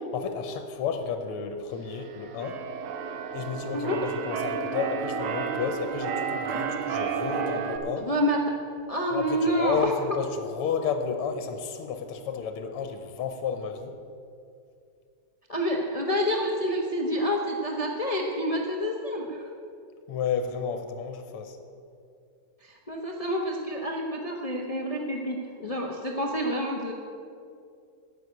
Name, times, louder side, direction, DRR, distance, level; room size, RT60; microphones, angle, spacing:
voice 1, 0.1-2.6 3.3-8.1 9.1-14.0 20.1-21.6, left 6 dB, 85° left, 7 dB, 1.8 m, -32 dB
Keyboard (musical), 1.9-7.8, right 6 dB, 75° right, 1.7 m, -31 dB
voice 2, 8.0-8.4 8.9-9.9 15.5-19.5 22.6-26.9, equal, 50° left, 0 dB, 0.4 m, -28 dB
9.9 x 7.6 x 9.5 m, 2.4 s
omnidirectional pair, 2.4 m